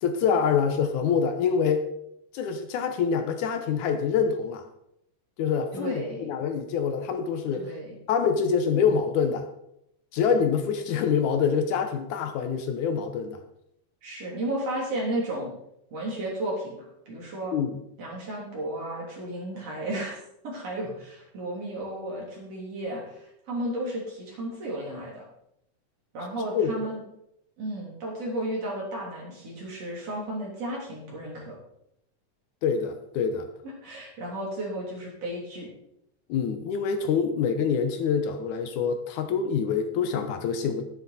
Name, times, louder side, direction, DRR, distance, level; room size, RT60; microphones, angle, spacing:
voice 1, 0.0-1.9 2.3-4.6 5.4-7.7 8.1-9.4 10.1-13.4 17.5-17.8 26.5-26.7 32.6-33.5 36.3-40.8, left 6 dB, 75° left, 7 dB, 2.2 m, -25 dB
voice 2, 5.7-6.3 7.5-8.0 14.0-15.5 15.9-16.8 17.1-17.5 18.0-20.2 20.4-25.3 26.1-27.0 27.6-31.5 33.8-35.7, right 1 dB, 50° right, -3 dB, 4.2 m, -33 dB
11.5 x 9.4 x 4.2 m, 0.79 s
omnidirectional pair, 3.7 m